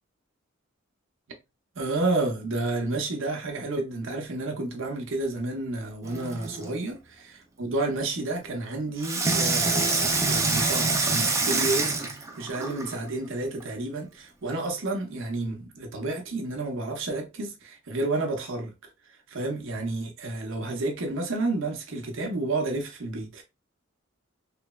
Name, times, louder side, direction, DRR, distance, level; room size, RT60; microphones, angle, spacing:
voice 1, 1.7-7.0 7.2-18.9 19.3-23.4, right 2 dB, 65° right, 0.7 m, -30 dB
Water tap faucet / Sink (filling or washing), 6.0-6.7 9.0-13.0 13.6-13.7, right 3 dB, 15° right, 0.4 m, -26 dB
3.2 x 2.0 x 2.3 m
head